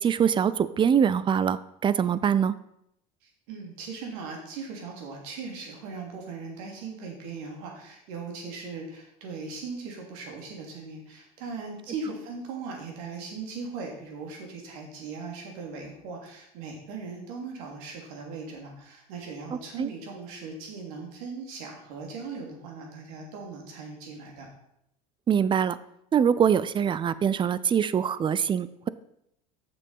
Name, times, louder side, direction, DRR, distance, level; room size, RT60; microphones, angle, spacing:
voice 1, 0.0-2.5 19.8-19.9 25.3-25.8 26.1-28.9, right 8 dB, 25° right, 16 dB, 0.5 m, -23 dB
voice 2, 3.2-24.5, right 4 dB, 75° right, 1 dB, 2.9 m, -39 dB
7.0 x 7.0 x 5.5 m, 0.77 s
supercardioid pair, 95°, 19 cm